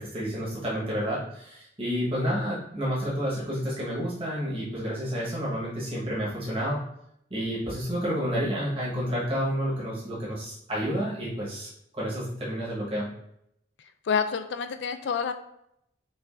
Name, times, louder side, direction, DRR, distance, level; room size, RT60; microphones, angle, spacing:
voice 1, 0.0-6.8 7.3-11.7 11.9-13.1, equal, 30° right, -7 dB, 1.1 m, -30 dB
voice 2, 14.1-15.3, left 6 dB, 75° left, 9 dB, 0.3 m, -28 dB
5.2 x 2.4 x 2.4 m, 0.75 s
head